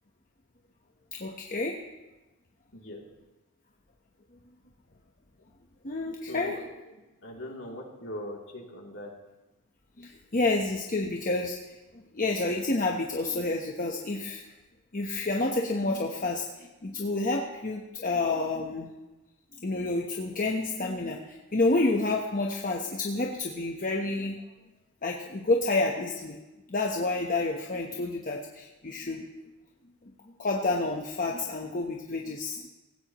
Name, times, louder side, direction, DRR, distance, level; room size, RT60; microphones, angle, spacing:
voice 1, 1.1-1.8 5.8-6.6 10.0-11.6 12.1-14.4 14.9-18.9 19.6-24.4 25.0-26.4 26.7-29.2 30.4-32.7, left 2 dB, 40° left, 0 dB, 1.1 m, -29 dB
voice 2, 6.3-6.6 7.2-9.1, left 1 dB, 65° left, -1 dB, 3.0 m, -40 dB
18.0 x 16.5 x 3.1 m, 1.1 s
head